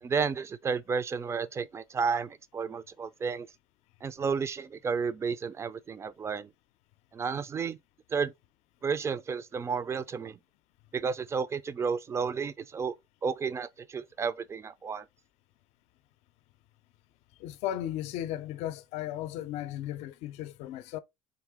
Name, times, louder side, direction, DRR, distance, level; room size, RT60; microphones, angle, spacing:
voice 1, 0.0-3.5 4.0-6.5 7.1-7.8 8.1-8.3 8.8-10.4 10.9-13.0 13.2-15.1, right 5 dB, 25° right, 0.4 m, -32 dB
voice 2, 17.4-21.0, left 12 dB, 70° left, 0.5 m, -35 dB
4.1 x 2.7 x 3.4 m
supercardioid pair, 105°, 12 cm